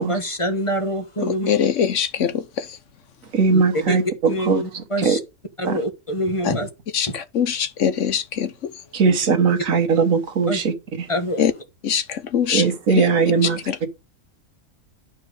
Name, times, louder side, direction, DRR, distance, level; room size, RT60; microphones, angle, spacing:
voice 1, 0.0-1.5 3.5-5.2 5.6-6.7 7.1-7.2 9.1-9.2 10.5-10.6 11.1-11.5, equal, 25° left, 1.1 m, -26 dB
voice 2, 1.5-2.8 6.4-6.6 6.9-8.5 11.4-11.5 11.8-13.1 13.4-13.8, left 8 dB, 70° left, 1.2 m, -23 dB
voice 3, 3.3-4.0 4.5-4.6 5.0-5.2 5.6-5.7 8.9-10.6 12.5-13.9, right 5 dB, 80° right, 1.7 m, -19 dB
10.0 x 4.6 x 6.2 m
omnidirectional pair, 1.4 m